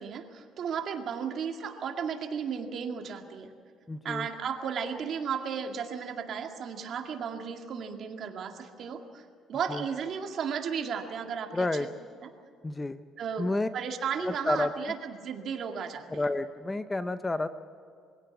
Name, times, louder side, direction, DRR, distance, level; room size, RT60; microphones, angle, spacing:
voice 1, 0.0-3.5 4.0-11.7 12.2-12.3 13.2-16.3, right 7 dB, 55° right, 4 dB, 2.1 m, -34 dB
voice 2, 3.9-4.3 9.7-9.8 11.5-11.9 12.6-13.0 13.4-13.7 14.2-14.9 16.1-17.5, left 2 dB, 15° left, 11 dB, 0.7 m, -30 dB
23.0 x 16.5 x 8.5 m, 2.2 s
cardioid pair, 130°, 0 cm